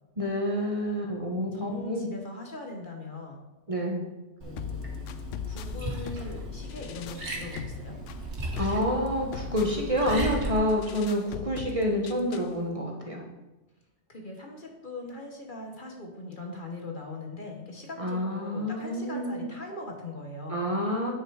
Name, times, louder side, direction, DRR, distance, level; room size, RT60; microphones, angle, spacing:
voice 1, 0.2-2.1 3.7-4.0 8.6-13.2 18.0-19.5 20.5-21.1, equal, 30° right, 0 dB, 1.3 m, -28 dB
voice 2, 1.4-3.4 4.4-5.0 5.4-8.0 14.1-20.6, left 2 dB, 45° left, 2 dB, 1.3 m, -40 dB
Liquid, 4.4-10.5, right 2 dB, 65° right, 1.9 m, -37 dB
sound 1, 4.6-12.6, left 8 dB, 90° left, 0.9 m, -39 dB
8.8 x 6.6 x 4.8 m, 1.1 s
omnidirectional pair, 1.2 m